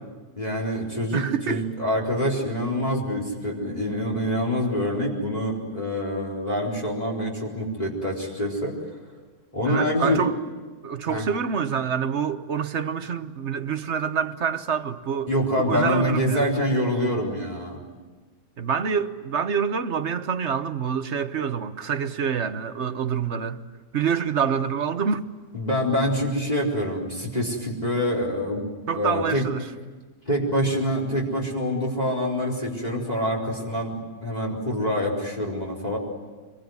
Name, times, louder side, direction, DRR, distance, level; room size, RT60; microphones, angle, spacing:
voice 1, 0.4-8.8 9.5-10.2 11.1-11.3 15.3-17.8 25.5-29.5 30.3-36.0, equal, 25° left, 4.4 m, -26 dB
voice 2, 1.1-1.7 9.6-10.3 10.8-15.3 15.6-16.5 18.6-23.6 23.9-25.2 28.9-29.7, right 7 dB, 45° right, 1.2 m, -26 dB
25.5 x 23.0 x 9.5 m
omnidirectional pair, 1.8 m